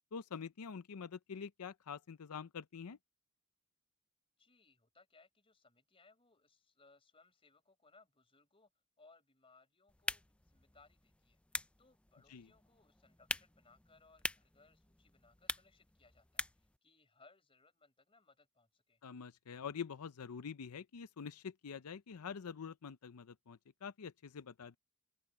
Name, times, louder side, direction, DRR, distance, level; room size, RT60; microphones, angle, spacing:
voice 1, 0.1-3.0 12.3-12.5 19.0-24.8, left 6 dB, 90° left, 0.6 m, -46 dB
voice 2, 4.4-8.7 9.0-11.4 11.8-19.0, left 3 dB, 25° left, 4.7 m, -67 dB
sound 1, 9.9-16.8, left 2 dB, 5° left, 0.3 m, -45 dB
open air
head